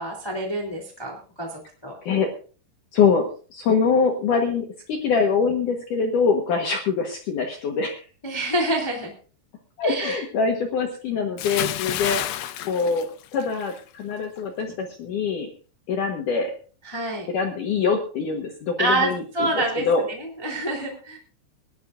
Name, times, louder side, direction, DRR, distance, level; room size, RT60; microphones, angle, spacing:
voice 1, 0.0-1.9 8.2-9.1 9.8-10.2 16.9-17.3 18.8-21.2, right 2 dB, 5° left, 0 dB, 2.3 m, -27 dB
voice 2, 2.9-8.0 9.8-12.2 12.6-15.5 15.9-16.5 17.3-20.0, left 5 dB, 60° left, 2 dB, 2.5 m, -24 dB
Bathtub (filling or washing) / Splash splatter, 11.4-13.8 14.1-14.4, left 12 dB, 90° left, 3.0 m, -29 dB
22.5 x 12.0 x 2.6 m, 0.39 s
omnidirectional pair, 4.7 m